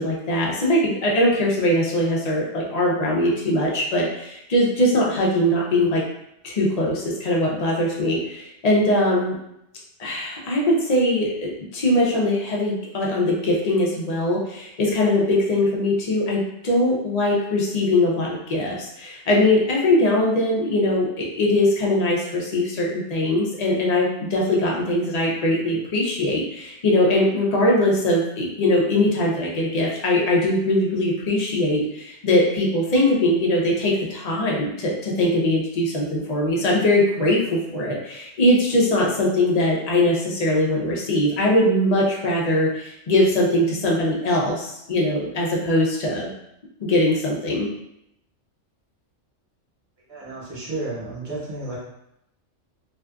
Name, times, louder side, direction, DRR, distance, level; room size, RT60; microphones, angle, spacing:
voice 1, 0.0-6.0 6.4-9.3 10.0-46.3 46.9-47.7, left 1 dB, 45° left, -3 dB, 0.5 m, -21 dB
voice 2, 50.1-51.8, right 2 dB, 60° right, -5 dB, 1.1 m, -32 dB
2.5 x 2.4 x 2.3 m, 0.81 s
omnidirectional pair, 1.3 m